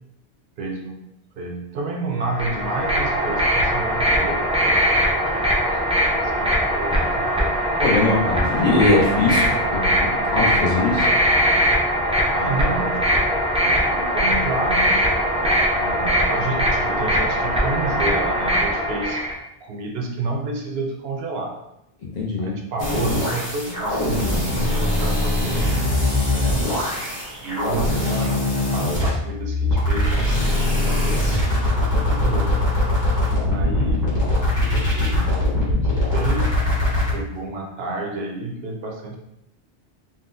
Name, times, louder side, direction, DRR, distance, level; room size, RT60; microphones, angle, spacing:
voice 1, 0.6-1.0 1.4-5.8 6.1-7.5 12.3-15.0 15.8-19.2 19.6-21.5 22.4-26.7 27.4-31.3 31.9-32.7 33.5-34.1 34.7-35.3 35.6-36.5 37.1-39.2, right 2 dB, 70° right, 1 dB, 0.8 m, -30 dB
sound 1, 2.2-19.3, equal, 10° right, 0.4 m, -21 dB
voice 2, 7.8-11.2 13.8-13.9 22.1-22.6, left 2 dB, 50° left, -4 dB, 0.6 m, -21 dB
sound 2, 22.8-37.1, left 1 dB, 20° left, 1.1 m, -21 dB
3.7 x 2.2 x 2.5 m, 0.82 s
omnidirectional pair, 1.1 m